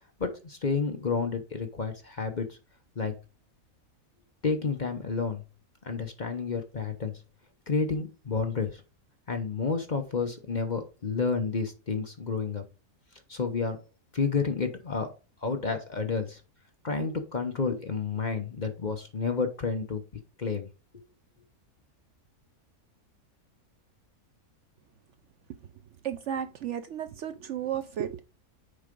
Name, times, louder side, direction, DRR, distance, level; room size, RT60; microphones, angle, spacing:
voice 1, 0.2-2.6 3.0-3.1 4.4-5.4 5.8-7.1 7.7-8.8 9.3-12.6 13.3-13.8 14.1-15.1 15.4-16.4 16.8-20.0 20.4-20.7, left 5 dB, 35° left, 0.9 m, -30 dB
voice 2, 26.0-28.2, right 9 dB, 65° right, 0.8 m, -33 dB
6.7 x 4.8 x 5.2 m
omnidirectional pair, 1.5 m